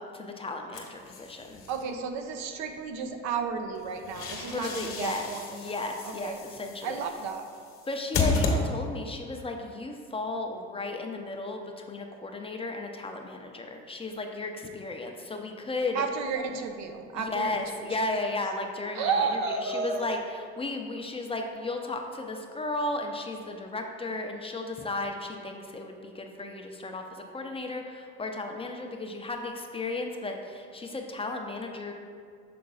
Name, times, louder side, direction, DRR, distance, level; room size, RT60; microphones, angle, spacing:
voice 1, 0.0-1.6 4.5-7.0 7.9-16.1 17.1-31.9, left 2 dB, 20° left, 3 dB, 0.6 m, -34 dB
sound 1, 0.7-1.8 3.8-9.1, left 3 dB, 45° left, 1.1 m, -33 dB
voice 2, 1.7-5.4 6.0-6.4 6.8-7.5 15.9-17.6 18.9-20.1, right 5 dB, 65° right, 5 dB, 0.7 m, -32 dB
6.7 x 3.8 x 3.9 m, 2.2 s
supercardioid pair, 85°, 30 cm